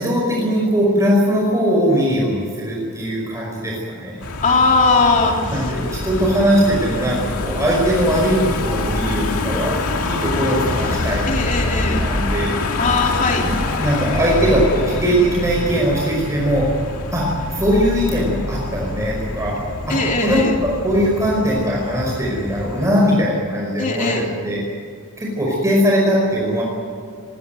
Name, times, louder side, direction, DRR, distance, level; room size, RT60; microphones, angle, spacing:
voice 1, 0.0-4.2 5.4-12.5 13.8-16.7 17.1-19.6 19.9-20.0 20.2-24.6 25.2-26.6, equal, 15° right, -3 dB, 5.2 m, -20 dB
Car passing by / Engine, 4.2-22.9, left 2 dB, 85° left, 2.3 m, -25 dB
voice 2, 4.4-5.3 11.3-12.0 12.8-13.5 19.9-20.5 23.8-24.3, left 3 dB, 35° left, 0 dB, 3.3 m, -18 dB
23.5 x 19.5 x 7.9 m, 2.3 s
head